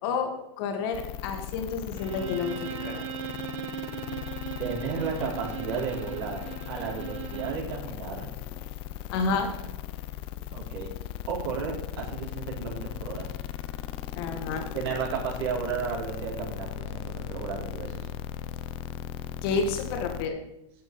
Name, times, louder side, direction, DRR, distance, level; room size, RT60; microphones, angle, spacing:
voice 1, 0.0-3.0 9.1-9.5 14.1-14.6 19.4-20.4, left 4 dB, 50° left, 4 dB, 2.2 m, -30 dB
sound 1, 0.9-20.3, left 11 dB, 35° left, 0.6 m, -38 dB
Bowed string instrument, 1.9-7.7, right 10 dB, 85° right, 1.2 m, -39 dB
voice 2, 4.6-8.3 10.5-10.9 11.3-13.3 14.7-18.1, right 6 dB, 60° right, -3 dB, 4.2 m, -33 dB
9.6 x 8.0 x 5.5 m, 0.84 s
supercardioid pair, 145°, 15 cm